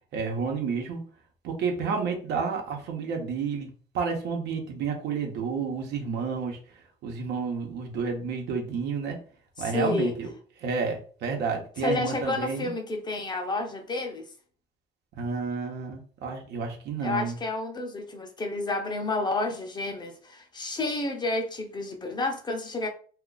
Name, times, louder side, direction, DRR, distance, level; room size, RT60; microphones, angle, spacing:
voice 1, 0.1-1.0 1.4-6.6 7.0-9.2 9.6-10.3 10.6-12.7 15.1-17.4, right 5 dB, 80° right, 0.9 m, -30 dB
voice 2, 9.6-10.2 11.8-14.3 17.0-22.9, left 2 dB, 25° left, 0.6 m, -30 dB
2.4 x 2.4 x 3.9 m
cardioid pair, 110°, 17 cm